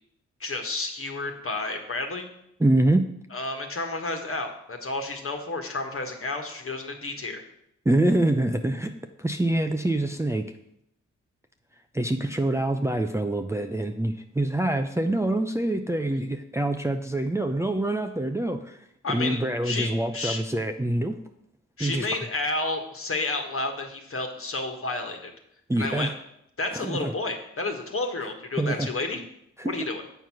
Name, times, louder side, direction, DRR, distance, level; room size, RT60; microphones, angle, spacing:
voice 1, 0.4-2.3 3.3-7.4 19.0-20.4 21.8-25.3 25.8-26.1 26.6-29.2 29.6-30.0, left 2 dB, 45° left, 4 dB, 1.5 m, -31 dB
voice 2, 2.6-3.1 7.9-10.5 11.9-18.8 19.1-21.2 21.8-22.3 25.7-26.1 26.7-27.1 28.6-28.9 29.6-29.8, right 1 dB, 10° right, 5 dB, 0.6 m, -25 dB
7.6 x 4.6 x 5.8 m, 0.77 s
supercardioid pair, 40°, 30 cm